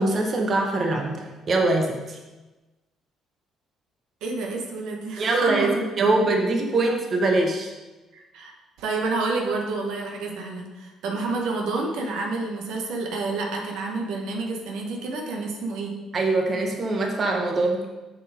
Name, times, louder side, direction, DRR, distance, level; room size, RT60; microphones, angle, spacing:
voice 1, 0.0-2.2 5.2-7.7 16.1-17.8, right 2 dB, 45° right, 2 dB, 1.1 m, -23 dB
voice 2, 4.2-6.1 8.1-8.5 8.8-15.9, right 3 dB, 80° right, 1 dB, 1.3 m, -29 dB
6.5 x 5.1 x 5.0 m, 1.1 s
supercardioid pair, 70°, 0 cm